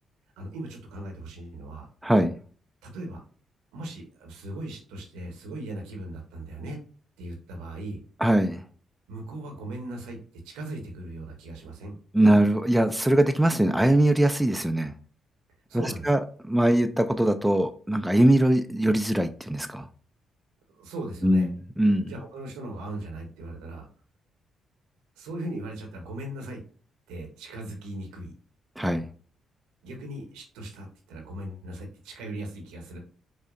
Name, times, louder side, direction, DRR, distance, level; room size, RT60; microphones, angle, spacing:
voice 1, 0.4-1.9 2.8-3.2 3.7-6.8 7.2-8.0 9.1-10.2 10.4-12.0 15.7-16.1 20.7-21.5 22.1-23.9 25.2-26.6 27.1-28.3 29.8-33.0, right 1 dB, 85° right, 0.8 m, -38 dB
voice 2, 2.0-2.3 8.2-8.6 12.1-14.9 15.7-16.2 16.5-19.9 21.2-22.1 28.8-29.1, right 1 dB, 5° right, 0.4 m, -22 dB
4.9 x 2.1 x 2.5 m
supercardioid pair, 55°, 0 cm